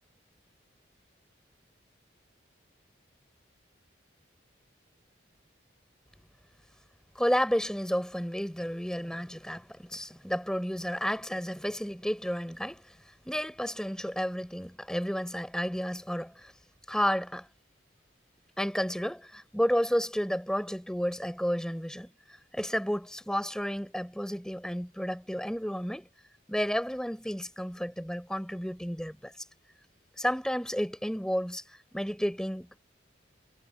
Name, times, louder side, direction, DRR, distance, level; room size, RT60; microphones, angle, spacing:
voice 1, 7.2-12.9 13.3-16.5 16.9-17.5 18.6-22.1 22.5-26.1 26.5-29.3 30.2-31.6 31.9-32.7, equal, 5° left, 5.6 m, -31 dB
head